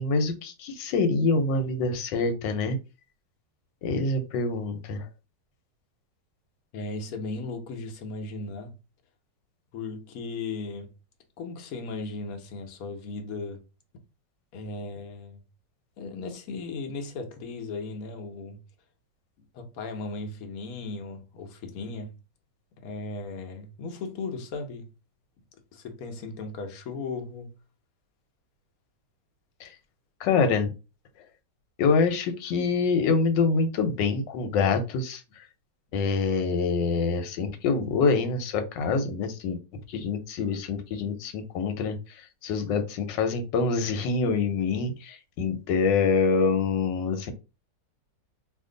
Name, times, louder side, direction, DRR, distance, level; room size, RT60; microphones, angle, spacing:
voice 1, 0.0-2.8 3.8-5.1 29.6-29.7 30.2-30.7 31.8-35.5 35.9-39.6 39.9-47.3, left 4 dB, 85° left, 1.4 m, -26 dB
voice 2, 6.7-8.7 9.7-10.9 11.4-13.6 14.5-15.4 16.0-18.6 19.5-22.2 22.8-24.9 25.7-27.5, left 3 dB, 60° left, 1.1 m, -36 dB
2.9 x 2.5 x 3.7 m
omnidirectional pair, 1.9 m